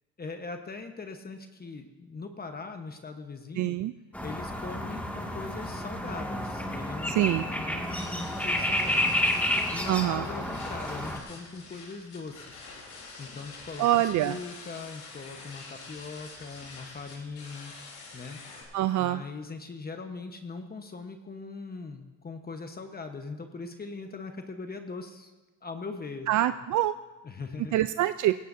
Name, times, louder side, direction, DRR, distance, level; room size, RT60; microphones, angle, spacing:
voice 1, 0.2-3.8 4.2-9.2 9.7-12.6 13.2-17.7 18.1-18.4 19.0-25.3 25.6-26.3 27.2-27.7, left 4 dB, 30° left, 6 dB, 1.1 m, -40 dB
voice 2, 3.6-3.9 7.1-7.4 9.9-10.2 13.8-14.4 18.7-19.2 26.3-26.9 27.7-28.4, right 14 dB, 70° right, 12 dB, 0.5 m, -25 dB
sound 1, 4.1-11.2, left 1 dB, 5° left, 2.0 m, -30 dB
sound 2, 7.8-18.6, left 3 dB, 80° left, 3.9 m, -47 dB
17.0 x 16.5 x 2.7 m, 1.2 s
cardioid pair, 90°, 30 cm